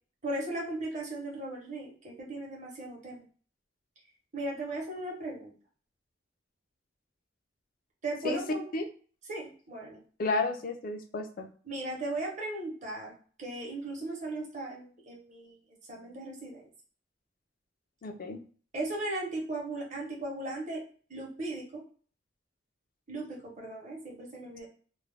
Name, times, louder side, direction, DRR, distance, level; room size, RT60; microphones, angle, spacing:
voice 1, 0.2-3.3 4.3-5.5 8.0-8.7 9.3-10.0 11.6-13.1 13.4-15.6 15.9-16.6 18.7-20.8 21.1-21.8 23.1-24.7, right 2 dB, 40° right, -2 dB, 0.8 m, -37 dB
voice 2, 10.2-11.5 18.0-18.4, left 3 dB, 50° left, 6 dB, 0.4 m, -32 dB
2.3 x 2.1 x 3.2 m, 0.42 s
head